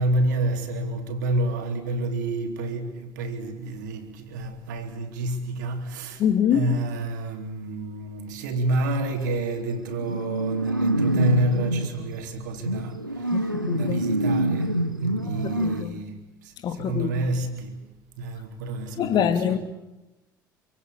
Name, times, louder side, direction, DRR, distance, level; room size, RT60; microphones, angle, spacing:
voice 1, 0.0-6.2 6.5-17.9 18.2-19.6, right 1 dB, 65° right, 3.7 m, -29 dB
voice 2, 6.2-6.7 13.3-14.0 15.4-16.0 16.6-17.3 19.0-19.6, left 8 dB, 45° left, 2.5 m, -25 dB
sound 1, 9.0-9.2 9.5-11.9 12.6-15.8, right 1 dB, 90° right, 1.3 m, -26 dB
28.0 x 25.0 x 7.0 m
figure-of-eight pair, 65°, 11 cm